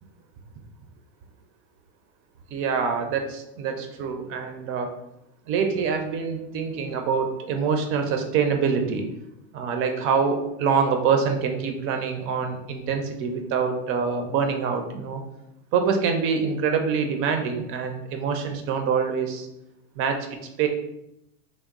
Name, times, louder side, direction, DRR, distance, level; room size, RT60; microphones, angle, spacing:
voice 1, 2.5-4.9 5.5-9.0 9.5-15.2 15.7-19.5 20.0-20.7, right 6 dB, 35° right, 5 dB, 0.4 m, -25 dB
2.9 x 2.0 x 3.6 m, 0.84 s
supercardioid pair, 120°, 41 cm